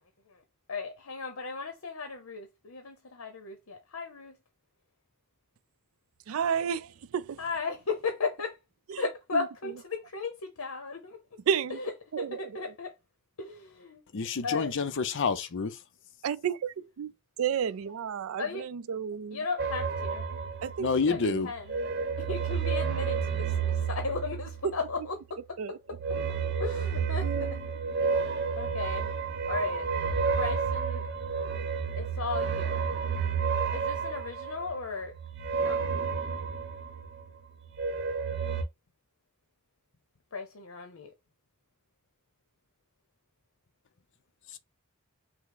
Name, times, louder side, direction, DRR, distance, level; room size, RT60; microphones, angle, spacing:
voice 1, 0.7-4.3 7.4-8.6 9.0-11.2 12.2-12.9 13.4-14.0 14.4-14.7 18.4-18.6 19.3-20.4 21.1-21.9 22.2-23.5 23.9-25.1 26.6-27.6 28.0-29.1 29.5-29.9 30.3-31.0 32.0-32.9 33.7-35.1 35.6-35.8 40.3-41.1, left 4 dB, 85° left, 0.8 m, -36 dB
voice 2, 6.3-7.4 8.9-9.5 11.5-11.8 12.1-12.7 16.2-17.1 17.4-19.5 20.6-21.5 24.6-25.1 25.6-26.3 27.2-27.7, right 7 dB, 75° right, 0.4 m, -32 dB
voice 3, 14.1-15.8 20.8-21.5, left 5 dB, 60° left, 0.6 m, -28 dB
sound 1, 19.6-21.2 21.5-25.1 25.9-37.3 37.6-38.6, right 6 dB, 55° right, 0.8 m, -31 dB
5.6 x 2.1 x 3.8 m
head